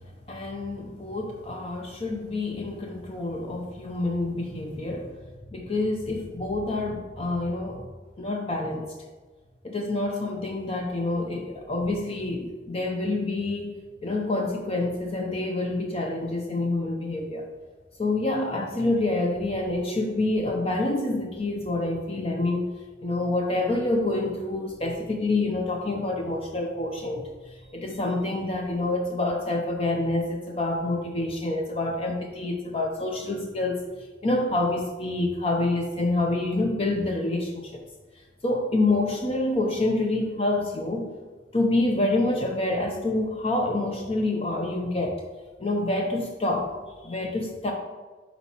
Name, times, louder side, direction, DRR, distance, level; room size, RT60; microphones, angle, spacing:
voice 1, 0.3-5.2 5.5-7.9 8.2-8.9 9.6-13.7 14.0-17.4 18.0-22.7 23.0-27.2 27.7-33.8 34.2-37.7 38.4-41.1 41.5-45.2 45.6-46.7 47.0-47.7, left 2 dB, 35° left, 1 dB, 0.6 m, -27 dB
10.0 x 4.1 x 3.0 m, 1.3 s
head